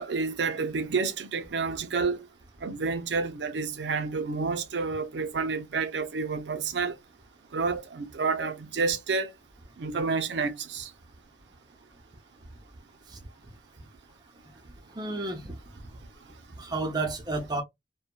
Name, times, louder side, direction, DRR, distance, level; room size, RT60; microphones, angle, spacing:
voice 1, 0.0-2.2 2.6-7.0 7.5-9.3 9.8-10.9, right 4 dB, 80° right, 0.5 m, -29 dB
voice 2, 14.9-15.5 16.6-17.6, right 2 dB, 25° right, 0.6 m, -31 dB
2.7 x 2.2 x 2.2 m
head